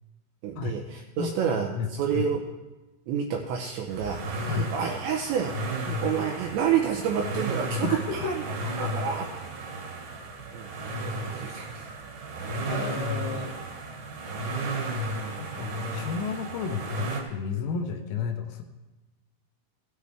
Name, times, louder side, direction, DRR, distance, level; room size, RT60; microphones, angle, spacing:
voice 1, 0.4-2.5 3.1-5.6 5.9-9.3 10.5-11.9 14.3-14.4, right 7 dB, 85° right, 2 dB, 2.6 m, -29 dB
voice 2, 1.2-2.3 4.5-4.7 7.8-8.3 12.7-13.6 15.4-18.6, left 6 dB, 80° left, 3 dB, 3.3 m, -32 dB
sound 1, 3.9-17.2, right 1 dB, 60° right, 2.1 m, -33 dB
17.0 x 9.4 x 3.4 m, 1.1 s
omnidirectional pair, 6.0 m